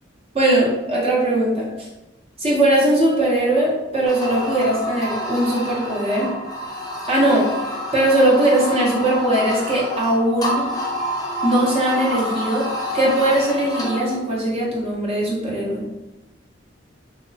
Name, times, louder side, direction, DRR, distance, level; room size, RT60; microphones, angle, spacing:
voice 1, 0.3-1.9 2.4-6.3 7.1-10.7 11.4-12.7 12.9-15.8, right 1 dB, 35° right, -4 dB, 0.6 m, -20 dB
sound 1, 4.1-14.2, left 1 dB, 20° left, 0.4 m, -28 dB
2.8 x 2.1 x 2.6 m, 0.98 s
head